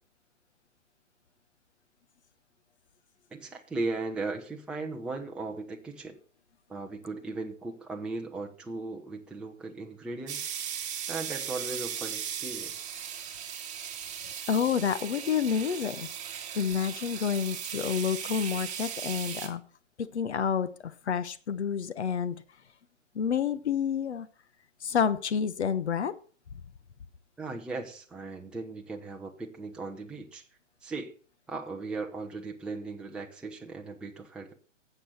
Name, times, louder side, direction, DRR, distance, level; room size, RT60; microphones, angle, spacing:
voice 1, 3.3-6.2 6.7-10.5 11.1-12.9 27.4-30.4 30.8-31.1 31.5-34.5, right 3 dB, 5° right, 1 dB, 0.7 m, -37 dB
sound 1, 10.3-19.5, right 9 dB, 20° right, 2.0 m, -37 dB
voice 2, 14.5-16.1 16.5-19.6 20.0-22.4 23.1-24.3 24.8-26.1, left 7 dB, 60° left, 13 dB, 1.0 m, -29 dB
13.0 x 7.8 x 5.7 m, 0.41 s
figure-of-eight pair, 125°, 37 cm